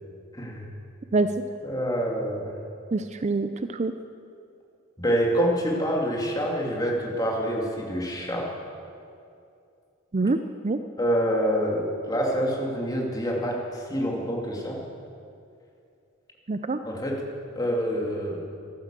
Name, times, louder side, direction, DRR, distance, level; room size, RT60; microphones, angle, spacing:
voice 1, 0.3-0.7 1.6-2.6 5.0-8.5 11.0-14.8 16.8-17.2 17.6-18.5, equal, 20° left, -2 dB, 2.6 m, -26 dB
voice 2, 2.9-3.9 10.1-10.8 16.5-16.8, right 3 dB, 35° right, 10 dB, 0.5 m, -25 dB
14.5 x 12.0 x 7.4 m, 2.5 s
head